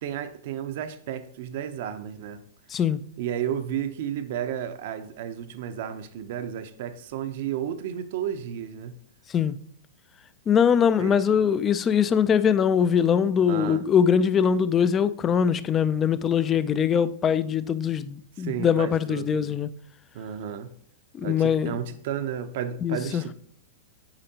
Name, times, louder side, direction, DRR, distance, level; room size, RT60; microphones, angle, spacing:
voice 1, 0.0-2.4 3.2-9.0 11.0-11.5 13.5-13.8 18.4-19.6 20.1-20.7 21.2-23.3, right 9 dB, 55° right, 0.6 m, -32 dB
voice 2, 2.7-3.0 9.3-9.6 10.5-19.7 21.1-21.8 22.8-23.2, left 7 dB, 20° left, 0.3 m, -22 dB
8.7 x 5.0 x 2.8 m
hypercardioid pair, 145°, 0 cm